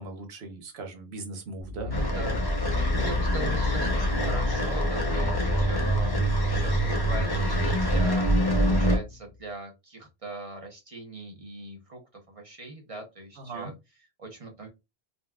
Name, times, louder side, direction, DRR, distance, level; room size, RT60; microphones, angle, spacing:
voice 1, 0.0-1.9 13.4-13.7, right 3 dB, 85° right, 5 dB, 1.1 m, -38 dB
sound 1, 1.6-9.2, left 4 dB, 60° left, 0.7 m, -34 dB
sound 2, 1.9-9.0, equal, 25° left, 0.7 m, -25 dB
voice 2, 1.9-8.2 8.6-14.7, right 2 dB, 35° right, 2 dB, 0.8 m, -41 dB
3.9 x 2.3 x 2.3 m, 0.23 s
omnidirectional pair, 1.1 m